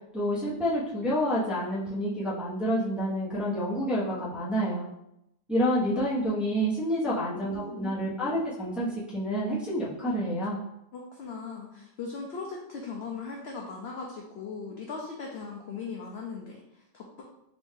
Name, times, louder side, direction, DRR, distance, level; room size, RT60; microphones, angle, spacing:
voice 1, 0.1-4.9 5.5-10.6, equal, ahead, -10 dB, 1.0 m, -28 dB
voice 2, 7.1-7.9 10.9-17.2, left 4 dB, 65° left, -1 dB, 0.7 m, -39 dB
3.9 x 2.6 x 3.6 m, 0.82 s
omnidirectional pair, 1.6 m